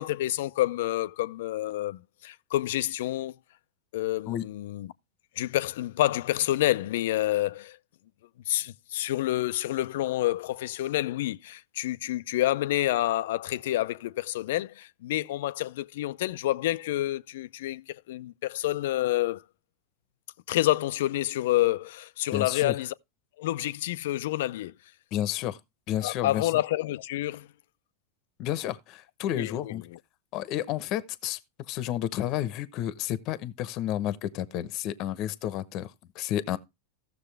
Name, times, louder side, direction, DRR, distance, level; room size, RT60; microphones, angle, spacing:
voice 1, 0.0-3.3 3.9-4.9 5.4-7.8 8.5-19.4 20.5-22.9 23.4-24.7 26.0-27.5 29.3-30.0, left 15 dB, 70° left, 0.5 m, -28 dB
voice 2, 22.3-22.7 25.1-25.6 25.9-26.5 28.4-29.8 30.3-31.4 31.7-36.6, left 12 dB, 50° left, 0.9 m, -31 dB
15.0 x 6.7 x 3.3 m
hypercardioid pair, 105°, 0 cm